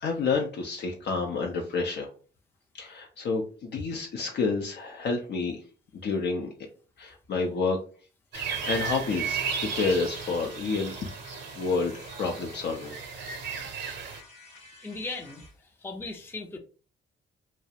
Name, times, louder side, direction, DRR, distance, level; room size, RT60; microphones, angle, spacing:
voice 1, 0.0-2.1 2.7-5.6 6.0-6.5 7.0-7.8 8.3-11.1 11.6-13.0, left 4 dB, 60° left, 2 dB, 0.5 m, -29 dB
sound 1, 8.3-14.2, right 6 dB, 60° right, 0.6 m, -35 dB
sound 2, 9.1-15.6, left 2 dB, 30° left, 0.8 m, -51 dB
voice 2, 14.8-16.6, left 3 dB, 10° left, 3 dB, 0.4 m, -38 dB
2.4 x 2.0 x 2.7 m, 0.37 s
cardioid pair, 90°, 20 cm